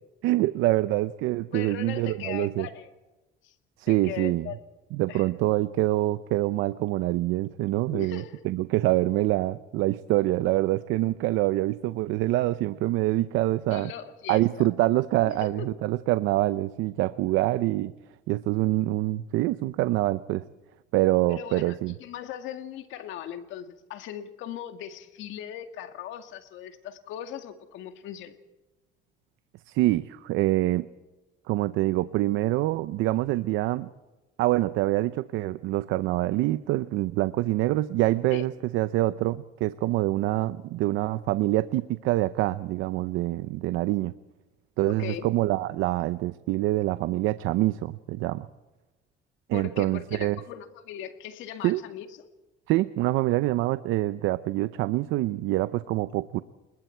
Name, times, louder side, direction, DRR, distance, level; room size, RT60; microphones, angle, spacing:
voice 1, 0.2-2.7 3.8-4.5 4.9-13.9 14.3-17.9 18.3-20.4 20.9-21.9 29.7-30.9 31.5-33.9 34.4-44.1 44.8-48.5 49.5-50.4 51.6-51.8 52.7-56.4, right 17 dB, 85° right, 14 dB, 0.7 m, -25 dB
voice 2, 1.5-2.9 3.4-3.5 3.9-4.6 5.1-5.3 7.9-8.4 13.7-14.7 15.2-15.7 21.3-28.4 38.3-38.5 44.9-45.3 49.5-52.1, left 10 dB, 75° left, 7 dB, 2.1 m, -39 dB
30.0 x 20.5 x 4.6 m, 1.1 s
cardioid pair, 120°, 20 cm